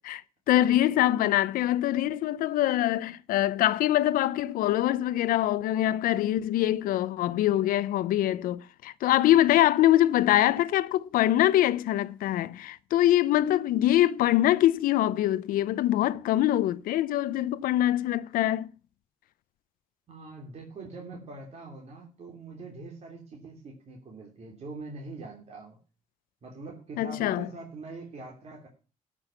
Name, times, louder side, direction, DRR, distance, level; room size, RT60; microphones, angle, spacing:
voice 1, 0.5-18.7 27.0-27.5, left 13 dB, 80° left, 0.7 m, -24 dB
voice 2, 20.1-25.8 26.4-28.7, right 3 dB, 50° right, 3.2 m, -43 dB
13.0 x 6.3 x 7.0 m
cardioid pair, 90°, 14 cm